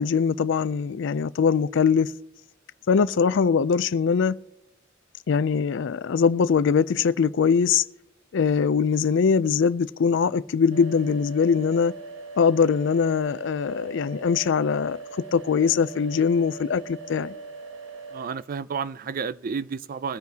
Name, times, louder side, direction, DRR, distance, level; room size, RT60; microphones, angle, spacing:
voice 1, 0.0-2.1 2.9-4.4 5.3-7.8 8.3-11.9 12.4-15.0 15.3-17.3, left 6 dB, 65° left, 0.4 m, -22 dB
sound 1, 10.7-18.3, right 4 dB, 70° right, 0.9 m, -41 dB
voice 2, 18.1-20.2, right 6 dB, 45° right, 0.4 m, -31 dB
21.5 x 9.5 x 2.8 m
head